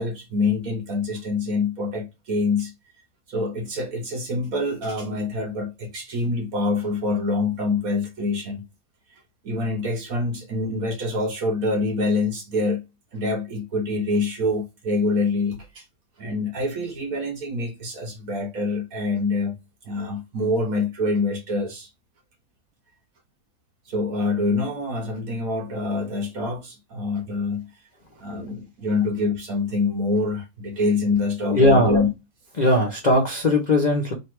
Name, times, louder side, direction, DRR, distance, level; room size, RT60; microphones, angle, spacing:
voice 1, 0.0-2.7 3.3-8.6 9.4-12.8 13.1-15.8 16.2-19.6 19.8-21.9 23.9-27.7 28.2-32.1, left 2 dB, 60° right, 1.1 m, -25 dB
voice 2, 31.5-32.0 32.6-34.1, left 1 dB, 50° left, 0.5 m, -19 dB
3.3 x 2.8 x 4.5 m
omnidirectional pair, 2.1 m